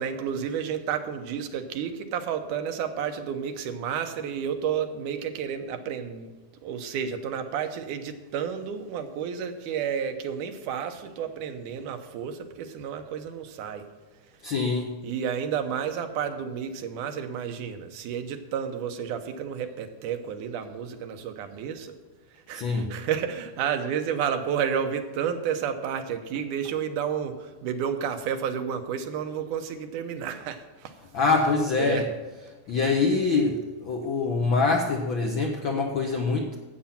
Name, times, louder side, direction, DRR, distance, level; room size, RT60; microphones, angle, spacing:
voice 1, 0.0-6.3 6.6-13.9 15.0-21.9 22.5-30.9 31.8-32.0, right 8 dB, 85° right, 7 dB, 2.5 m, -31 dB
voice 2, 14.4-14.9 22.5-22.9 31.1-32.1 32.7-36.6, left 4 dB, 75° left, 2 dB, 1.1 m, -24 dB
13.0 x 8.7 x 5.8 m, 1.2 s
omnidirectional pair, 3.5 m